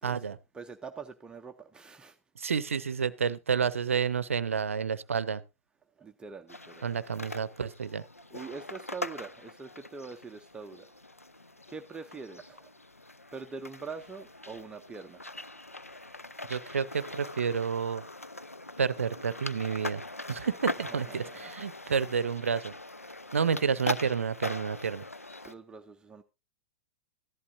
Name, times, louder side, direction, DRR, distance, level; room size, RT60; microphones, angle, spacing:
voice 1, 0.0-0.4 2.4-5.4 6.8-8.0 16.5-18.0 18.8-20.0 20.3-22.7 23.3-25.0, right 6 dB, 70° right, 0.6 m, -30 dB
voice 2, 0.5-2.2 6.0-6.9 8.3-10.9 11.7-12.7 13.3-15.4 20.9-21.4 25.4-26.2, right 5 dB, 10° right, 0.6 m, -44 dB
sound 1, 6.5-25.5, left 2 dB, 90° left, 0.5 m, -41 dB
14.5 x 11.0 x 2.6 m
figure-of-eight pair, 95°, 7 cm